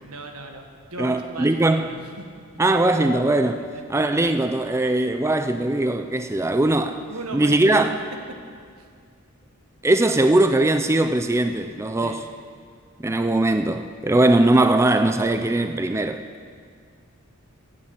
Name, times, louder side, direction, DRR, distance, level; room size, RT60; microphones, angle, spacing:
voice 1, 0.0-0.6 0.9-2.2 3.5-3.8 7.1-7.6 8.8-8.9 12.0-12.2, right 2 dB, 90° right, 4 dB, 1.7 m, -37 dB
voice 2, 1.0-1.8 2.6-3.6 3.9-7.0 7.3-7.9 9.8-12.2 13.0-16.2, right 2 dB, 10° right, 8 dB, 0.4 m, -20 dB
14.0 x 8.7 x 8.8 m, 2.1 s
head